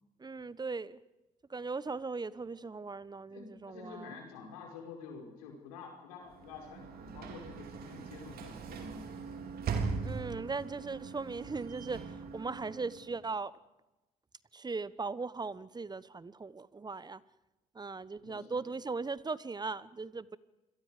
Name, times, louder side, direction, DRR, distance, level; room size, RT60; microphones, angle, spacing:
voice 1, 0.2-1.0 1.5-4.2 10.0-13.5 14.5-17.2 17.7-20.4, right 4 dB, 25° right, 18 dB, 1.2 m, -39 dB
voice 2, 3.3-9.2 18.2-18.7, left 5 dB, 85° left, 2 dB, 5.4 m, -49 dB
Sliding door / Slam, 6.2-13.3, right 5 dB, 60° right, 4.0 m, -40 dB
28.0 x 22.5 x 5.1 m, 1.0 s
hypercardioid pair, 60°, 18 cm